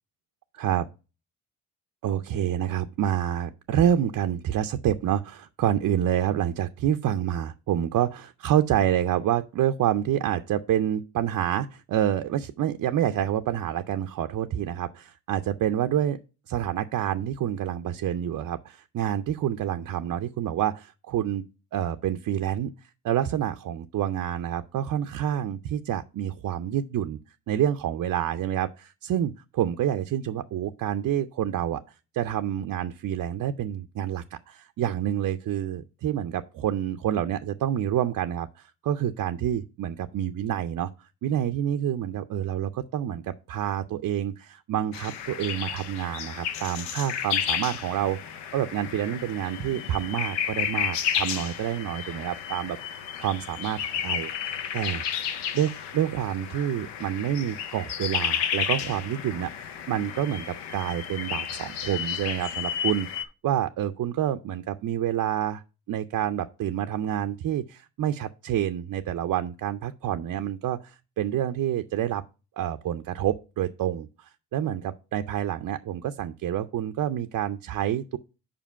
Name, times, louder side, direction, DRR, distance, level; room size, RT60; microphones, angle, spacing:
voice 1, 2.0-16.2 16.5-21.5 21.7-22.7 23.0-27.2 27.5-31.8 32.1-40.9 41.2-52.8 53.2-55.1 55.5-65.6 65.9-72.2 72.6-78.2, right 10 dB, 45° right, 0.5 m, -28 dB
sound 1, 44.9-63.2, left 8 dB, 75° left, 0.8 m, -32 dB
5.1 x 5.0 x 5.6 m
supercardioid pair, 60°, 41 cm